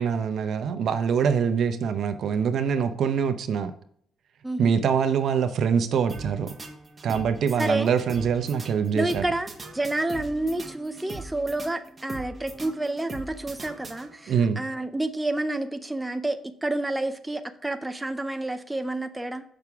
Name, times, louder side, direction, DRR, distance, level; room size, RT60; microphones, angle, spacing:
voice 1, 0.0-3.7 4.6-6.5 7.0-9.2 14.3-14.6, right 7 dB, 65° right, 9 dB, 0.7 m, -24 dB
sound 1, 6.1-14.4, right 2 dB, 30° right, 1.2 m, -41 dB
voice 2, 7.6-7.9 9.0-19.4, right 2 dB, 10° right, 8 dB, 0.6 m, -29 dB
6.6 x 5.9 x 3.5 m, 0.64 s
cardioid pair, 90°, 0 cm